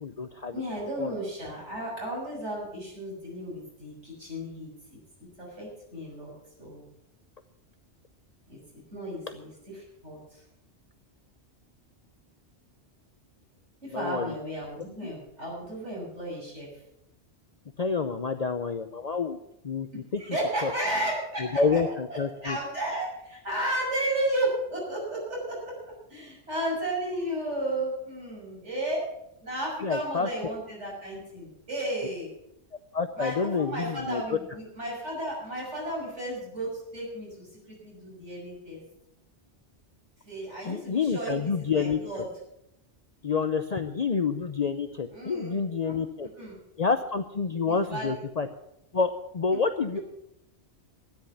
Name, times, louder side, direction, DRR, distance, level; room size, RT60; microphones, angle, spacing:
voice 1, 0.0-0.5 1.0-1.1 13.9-14.3 15.0-15.1 17.8-19.9 20.1-20.2 20.6-20.7 21.5-22.6 29.8-30.5 32.9-34.4 40.7-42.2 43.2-46.3 46.8-48.5 48.9-50.0, left 5 dB, 40° left, 8 dB, 0.7 m, -28 dB
voice 2, 0.5-5.0 5.4-6.3 6.6-6.8 8.5-8.6 8.9-10.4 13.8-16.7 20.2-21.8 22.1-25.6 26.1-29.0 29.4-32.3 33.2-37.5 37.8-38.8 40.3-42.3 45.1-45.6 45.8-45.9 46.4-46.5 47.7-48.2, right 1 dB, 90° right, -4 dB, 7.0 m, -33 dB
13.0 x 10.5 x 7.0 m, 0.81 s
omnidirectional pair, 1.2 m